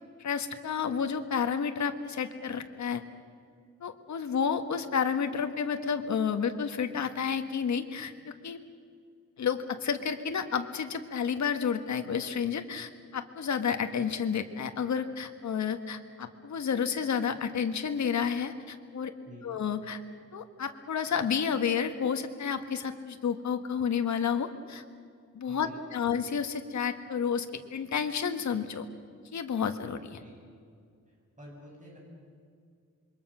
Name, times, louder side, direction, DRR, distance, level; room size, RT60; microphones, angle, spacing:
voice 1, 0.2-3.0 3.8-8.6 9.4-19.1 19.4-20.0 20.3-24.8 25.3-28.8 29.3-30.2, left 7 dB, 70° left, 7 dB, 1.6 m, -31 dB
voice 2, 19.3-19.6 25.5-26.1 30.2-30.5 31.4-32.0, equal, 25° right, -2 dB, 6.6 m, -50 dB
27.5 x 23.0 x 6.3 m, 2.2 s
wide cardioid pair, 150°, 30 cm